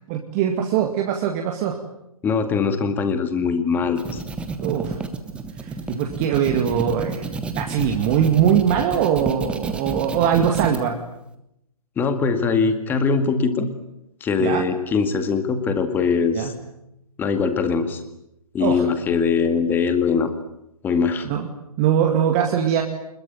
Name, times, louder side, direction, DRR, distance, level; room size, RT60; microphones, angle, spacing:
voice 1, 0.0-1.8 4.6-5.0 5.6-7.3 7.6-11.0 14.4-14.6 16.3-16.5 18.6-18.8 21.2-21.5 21.8-22.8, right 9 dB, 25° right, 3 dB, 2.1 m, -21 dB
voice 2, 2.2-4.2 12.0-13.7 14.2-16.5 17.2-18.0 18.5-20.3 20.8-21.3, left 5 dB, 10° left, 9 dB, 2.0 m, -21 dB
sound 1, 3.7-10.8, right 4 dB, 5° right, 1.3 m, -30 dB
26.5 x 21.5 x 9.2 m, 0.84 s
figure-of-eight pair, 135°, 19 cm